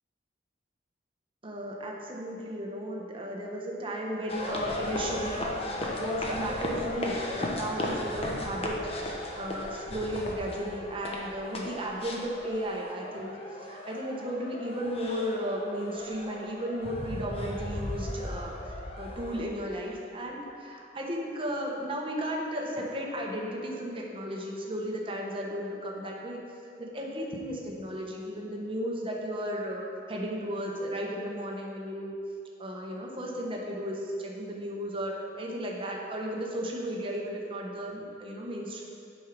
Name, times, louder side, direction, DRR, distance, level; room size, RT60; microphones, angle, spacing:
voice 1, 1.4-5.4 5.9-8.7 9.3-18.5 19.0-26.4 26.8-29.8 30.1-32.1 32.6-38.8, equal, 30° right, -2 dB, 1.2 m, -34 dB
sound 1, 4.3-19.4, left 1 dB, 35° left, 1.0 m, -36 dB
8.2 x 5.6 x 6.1 m, 2.6 s
head